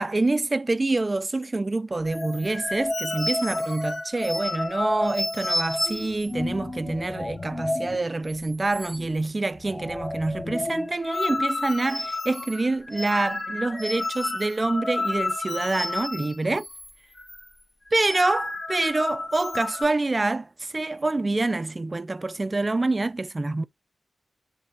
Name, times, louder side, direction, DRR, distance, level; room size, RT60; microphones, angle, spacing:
voice 1, 0.0-16.7 17.9-23.6, right 2 dB, 25° right, 0.5 m, -26 dB
sound 1, 2.1-8.0 8.3-8.4 8.7-9.3 9.6-16.9 17.2-17.4 17.9-19.8, left 2 dB, 25° left, 1.0 m, -30 dB
9.5 x 3.5 x 4.5 m
wide cardioid pair, 110°, 0 cm